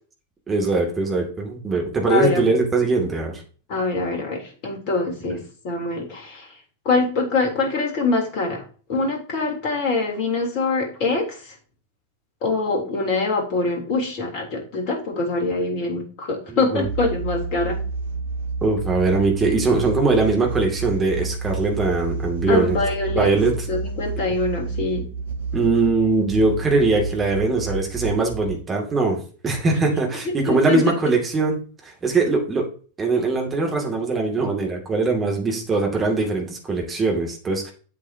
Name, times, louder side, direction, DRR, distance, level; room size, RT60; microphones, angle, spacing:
voice 1, 0.5-3.4 16.5-16.8 18.6-22.8 23.1-23.5 25.5-32.7 33.0-37.7, right 3 dB, 20° right, 1 dB, 2.5 m, -21 dB
voice 2, 2.1-2.5 3.7-6.6 6.8-8.6 8.9-11.6 12.4-17.8 22.5-23.3 23.7-25.1 30.2-30.8, left 3 dB, 45° left, 1 dB, 3.4 m, -24 dB
sound 1, 16.8-28.6, right 3 dB, 65° right, 1.2 m, -30 dB
8.4 x 8.2 x 2.9 m, 0.40 s
figure-of-eight pair, 90°, 0 cm